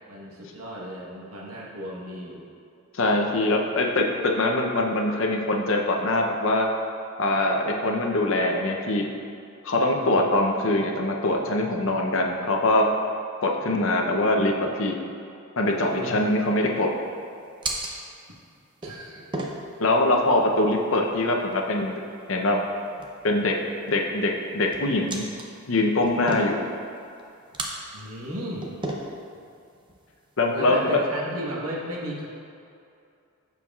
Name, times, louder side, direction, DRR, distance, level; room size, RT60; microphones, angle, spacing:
voice 1, 0.1-2.4 9.9-10.3 15.9-16.2 18.8-19.2 27.9-28.8 30.5-32.3, equal, 80° right, -3 dB, 1.3 m, -35 dB
voice 2, 2.9-4.0 4.4-6.7 7.2-9.1 9.6-12.9 13.4-15.0 15.6-16.9 19.8-21.9 22.3-22.6 23.2-23.6 23.9-25.2 25.7-26.6 30.4-31.0, left 2 dB, 60° left, 1 dB, 0.7 m, -23 dB
sound 1, 15.7-31.0, right 2 dB, 20° right, 0.5 m, -39 dB
12.5 x 4.6 x 2.4 m, 2.5 s
head